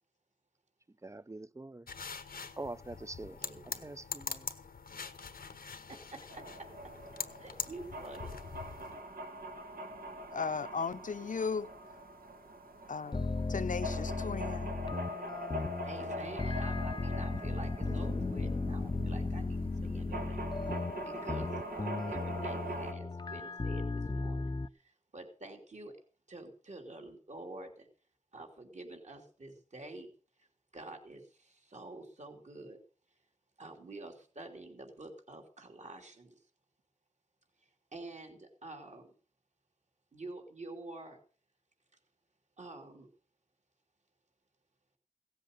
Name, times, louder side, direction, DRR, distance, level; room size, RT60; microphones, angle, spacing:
voice 1, 1.0-1.9 2.6-3.4 3.8-4.5, right 2 dB, 20° right, 0.5 m, -44 dB
sound 1, 1.9-9.0, left 5 dB, 90° left, 1.1 m, -43 dB
voice 2, 3.4-3.9 5.9-6.4 7.4-8.3 15.8-20.4 21.0-24.5 24.8-25.9 26.3-27.9 28.3-30.1 30.4-30.5 30.7-32.8 33.6-36.3 37.9-39.1 40.1-41.2 42.6-43.1, right 2 dB, 50° right, 3.0 m, -48 dB
Piledriver Cave, 6.3-22.9, right 1 dB, 80° right, 1.8 m, -43 dB
voice 3, 10.3-11.7 12.9-14.8, left 5 dB, 60° left, 0.8 m, -36 dB
sound 2, 13.1-24.7, left 3 dB, 30° left, 0.6 m, -36 dB
16.5 x 8.0 x 6.5 m
wide cardioid pair, 60°, 15 cm